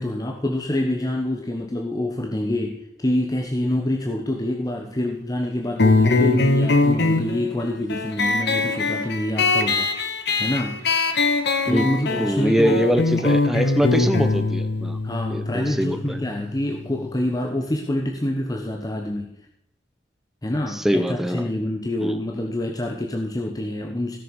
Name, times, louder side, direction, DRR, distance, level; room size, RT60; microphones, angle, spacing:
voice 1, 0.0-10.9 11.6-12.8 13.9-14.1 15.0-19.3 20.4-24.2, left 1 dB, 20° left, 2 dB, 1.0 m, -26 dB
sound 1, 5.8-16.9, left 3 dB, 70° left, 1.1 m, -22 dB
voice 2, 11.7-15.0 15.3-16.2 20.8-21.5 22.0-22.1, equal, ahead, 8 dB, 0.9 m, -23 dB
16.0 x 6.8 x 5.2 m, 0.75 s
head